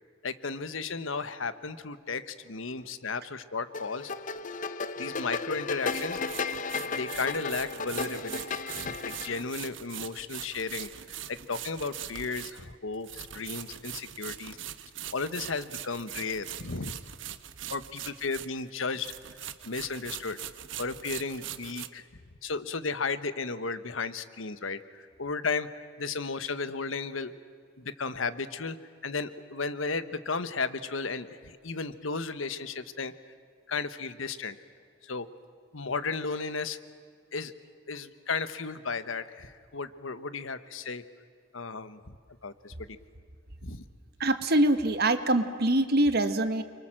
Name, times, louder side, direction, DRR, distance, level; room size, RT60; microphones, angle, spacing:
voice 1, 0.2-4.1 5.0-6.2 6.7-14.6 15.1-17.0 17.7-19.1 19.6-20.4 20.8-22.0 22.4-27.3 27.8-28.8 29.0-33.1 33.7-34.6 35.0-35.3 35.7-36.8 37.3-37.5 37.9-41.0 41.5-42.2 42.4-43.0 43.6-43.8, left 4 dB, 85° left, 12 dB, 1.3 m, -34 dB
sound 1, 3.7-9.4, left 4 dB, 40° left, 0.8 m, -34 dB
sound 2, 4.4-4.5 5.8-18.7 18.9-21.9, right 11 dB, 70° right, 1.1 m, -42 dB
voice 2, 44.2-46.6, right 1 dB, 55° right, 9 dB, 1.5 m, -24 dB
29.5 x 23.5 x 7.6 m, 2.1 s
head